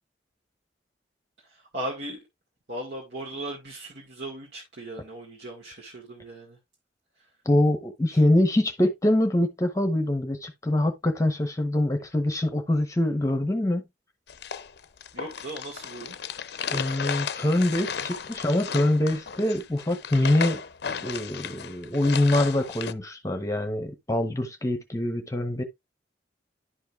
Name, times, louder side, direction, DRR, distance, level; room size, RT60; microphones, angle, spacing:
voice 1, 1.5-2.2 2.7-6.6 8.1-8.2 15.1-16.2, right 1 dB, 65° right, 2.0 m, -37 dB
voice 2, 7.4-13.8 16.7-20.6 21.0-25.6, left 1 dB, 15° left, 0.9 m, -24 dB
sound 1, 14.3-22.9, left 7 dB, 60° left, 0.6 m, -34 dB
11.0 x 5.2 x 2.5 m
head